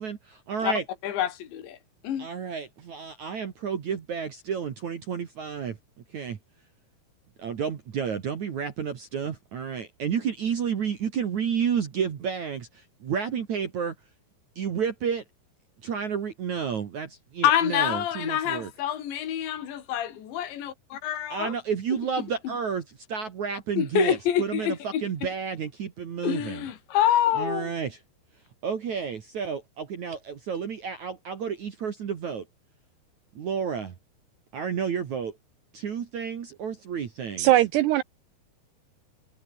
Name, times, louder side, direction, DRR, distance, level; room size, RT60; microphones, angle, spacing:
voice 1, 0.0-0.8 2.2-5.7 6.1-6.3 7.4-13.9 14.6-15.2 15.8-18.7 21.3-26.7 27.3-28.0 28.6-32.5 33.4-33.9 34.5-35.4 35.7-37.5, right 7 dB, 50° right, 2.6 m, -31 dB
voice 2, 1.0-1.8 2.0-2.3 17.4-21.5 23.8-25.0 26.2-27.7, left 10 dB, 70° left, 5.2 m, -26 dB
voice 3, 37.4-38.0, right 14 dB, 75° right, 2.6 m, -20 dB
omnidirectional pair, 5.5 m